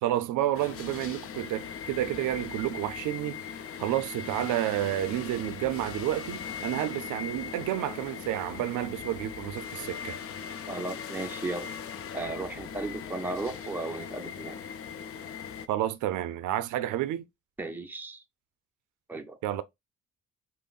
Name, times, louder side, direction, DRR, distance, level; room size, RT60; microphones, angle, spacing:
voice 1, 0.0-3.4 3.8-10.2 15.7-17.3 19.4-19.6, right 13 dB, 90° right, 0.5 m, -30 dB
sound 1, 0.5-15.7, left 7 dB, 50° left, 0.6 m, -40 dB
voice 2, 10.7-11.7 12.1-14.6 17.6-18.2 19.1-19.4, right 2 dB, 5° right, 0.6 m, -35 dB
5.2 x 2.1 x 2.3 m
cardioid pair, 90°, 30 cm